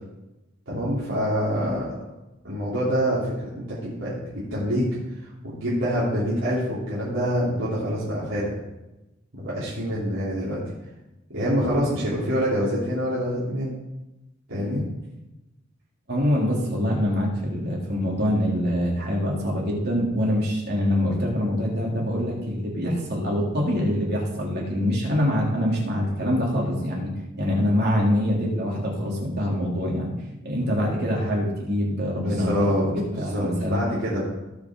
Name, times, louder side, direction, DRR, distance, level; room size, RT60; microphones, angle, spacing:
voice 1, 0.7-2.0 2.4-4.9 5.1-8.5 9.4-10.6 11.3-13.7 14.5-14.8 32.2-34.2, equal, 70° right, -10 dB, 3.6 m, -26 dB
voice 2, 16.1-27.1 27.4-30.1 30.4-33.8, equal, 55° right, -3 dB, 3.2 m, -24 dB
18.5 x 6.1 x 3.9 m, 0.99 s
head